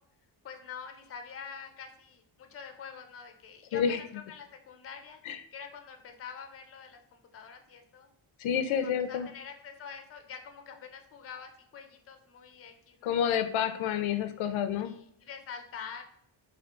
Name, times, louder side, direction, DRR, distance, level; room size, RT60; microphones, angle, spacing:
voice 1, 0.4-3.8 4.1-5.2 5.5-8.1 8.8-13.1 14.9-16.0, left 6 dB, 30° left, 6 dB, 0.5 m, -46 dB
voice 2, 8.4-9.3 13.0-14.9, left 8 dB, 80° left, 9 dB, 0.5 m, -29 dB
3.7 x 2.4 x 3.5 m, 0.70 s
wide cardioid pair, 135°, 47 cm